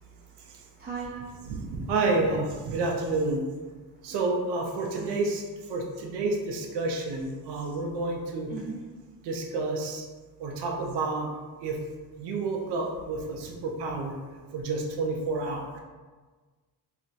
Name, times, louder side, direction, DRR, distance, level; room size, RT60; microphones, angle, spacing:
voice 1, 0.0-1.5 4.0-4.2 4.9-5.2 7.8-7.9 8.5-8.8, right 4 dB, 25° right, -3 dB, 0.3 m, -40 dB
voice 2, 1.1-3.4 4.0-5.4 5.7-8.5 9.2-10.0 10.4-11.3 11.6-11.8 12.2-14.2 14.5-15.8, right 3 dB, 85° right, 1 dB, 0.5 m, -29 dB
2.4 x 2.1 x 3.8 m, 1.4 s
cardioid pair, 105°, 39 cm